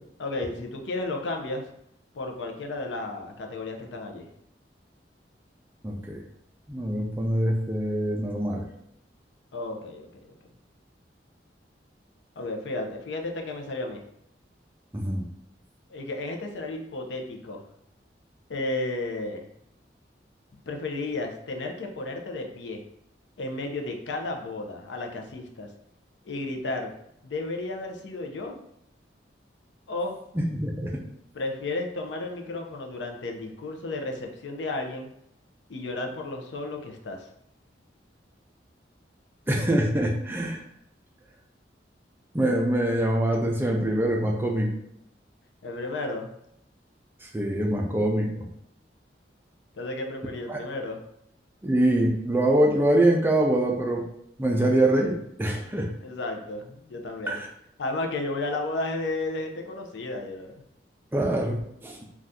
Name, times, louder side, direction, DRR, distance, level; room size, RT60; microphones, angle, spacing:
voice 1, 0.2-1.7 2.1-4.3 9.5-10.1 12.4-14.0 15.9-17.6 18.5-19.5 20.7-22.8 23.4-25.7 26.3-26.9 27.2-28.6 29.9-30.2 31.3-35.1 35.7-37.3 45.6-46.3 49.7-51.0 56.0-57.4 57.8-60.5, left 2 dB, 85° left, 3 dB, 0.5 m, -33 dB
voice 2, 5.8-6.2 6.7-8.6 14.9-15.2 30.5-30.9 39.5-40.6 42.3-44.7 47.2-48.4 50.5-50.6 51.6-54.0 54.4-55.9 57.3-57.5 61.1-62.0, right 1 dB, 10° right, 0 dB, 0.4 m, -24 dB
2.6 x 2.3 x 3.4 m, 0.75 s
head